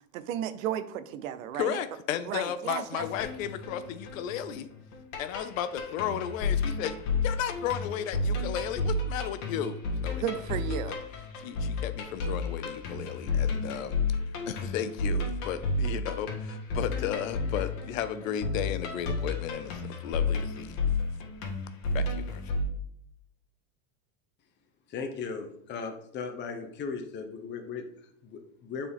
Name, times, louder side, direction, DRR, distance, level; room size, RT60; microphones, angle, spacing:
voice 1, 0.1-1.7 2.3-3.0 10.2-11.0, right 10 dB, 90° right, 0.7 m, -33 dB
voice 2, 1.5-4.7 5.2-6.9 7.2-9.8 10.0-10.4 10.7-10.9 11.3-13.9 14.5-20.8 21.9-22.4, left 9 dB, 85° left, 0.7 m, -34 dB
sound 1, 3.0-22.6, left 3 dB, 45° left, 1.8 m, -32 dB
voice 3, 24.9-28.9, left 5 dB, 25° left, 0.9 m, -37 dB
7.4 x 4.2 x 3.5 m
supercardioid pair, 125°, 39 cm